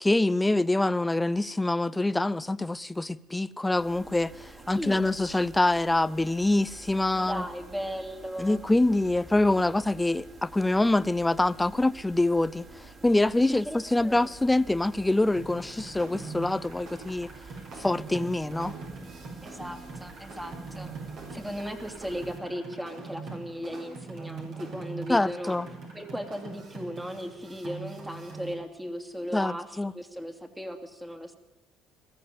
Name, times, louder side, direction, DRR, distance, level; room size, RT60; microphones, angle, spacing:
voice 1, 0.0-7.4 8.4-12.7 13.0-17.3 17.8-18.7 25.1-25.7 29.3-29.9, left 2 dB, 10° left, 0.7 m, -25 dB
sound 1, 3.8-22.4, right 3 dB, 30° right, 5.2 m, -49 dB
voice 2, 4.7-5.2 7.1-8.6 13.5-14.3 19.4-20.9 21.3-25.6 25.9-31.4, equal, 5° right, 2.8 m, -37 dB
sound 2, 15.3-28.5, right 4 dB, 60° right, 7.5 m, -42 dB
21.5 x 14.5 x 9.3 m
supercardioid pair, 95°, 0 cm